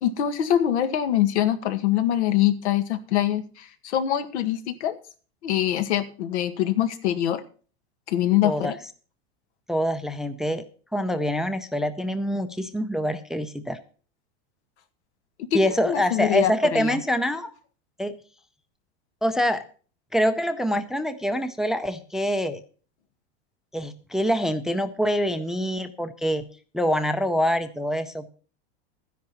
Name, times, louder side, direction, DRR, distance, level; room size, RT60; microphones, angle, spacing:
voice 1, 0.0-5.0 5.4-7.4 8.1-8.8 15.5-17.0, left 11 dB, 85° left, 9 dB, 1.8 m, -24 dB
voice 2, 9.7-10.6 10.9-13.8 15.5-17.5 18.0-18.1 19.2-19.6 20.1-22.6 23.7-26.4 26.7-28.3, equal, ahead, 10 dB, 0.5 m, -25 dB
12.5 x 10.5 x 4.2 m, 0.39 s
supercardioid pair, 155°, 33 cm